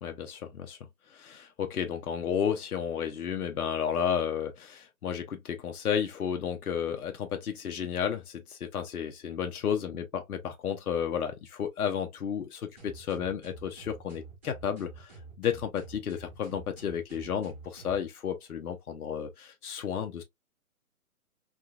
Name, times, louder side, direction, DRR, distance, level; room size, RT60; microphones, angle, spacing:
voice 1, 0.0-0.8 1.1-15.1 15.4-20.2, left 8 dB, 75° left, 0.9 m, -32 dB
sound 1, 12.8-18.0, right 3 dB, 10° right, 0.6 m, -48 dB
3.7 x 2.4 x 2.3 m
hypercardioid pair, 160°, 45 cm